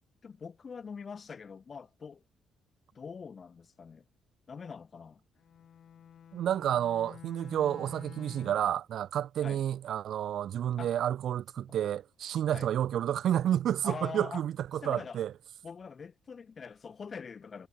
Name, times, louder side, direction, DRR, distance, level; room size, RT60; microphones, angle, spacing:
voice 1, 0.2-2.2 2.9-4.0 4.5-5.2 9.4-9.6 10.8-10.9 11.6-11.7 12.5-12.7 13.8-14.4 14.8-15.2 15.6-17.7, left 5 dB, 40° left, 1.4 m, -43 dB
Bowed string instrument, 5.4-8.8, left 9 dB, 60° left, 2.2 m, -50 dB
voice 2, 6.3-15.3, right 10 dB, 70° right, 0.6 m, -30 dB
cardioid pair, 90°, 0 cm